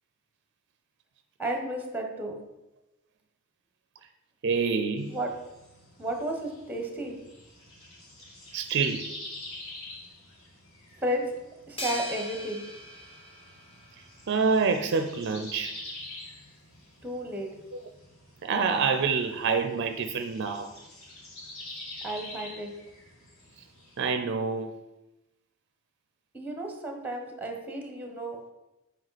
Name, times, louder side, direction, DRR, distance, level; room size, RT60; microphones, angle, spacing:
voice 1, 1.4-2.4 5.1-5.3 6.0-7.2 11.0-11.3 11.7-12.6 17.0-17.5 22.0-22.7 26.3-28.5, right 1 dB, 10° right, 3 dB, 1.1 m, -33 dB
voice 2, 4.4-5.1 8.5-9.1 14.3-15.7 18.4-20.7 24.0-24.7, right 5 dB, 55° right, 7 dB, 0.4 m, -27 dB
sound 1, 5.0-24.1, left 2 dB, 70° left, 2.1 m, -47 dB
sound 2, 11.8-14.3, equal, 25° left, 1.6 m, -39 dB
7.8 x 4.7 x 4.1 m, 0.97 s
head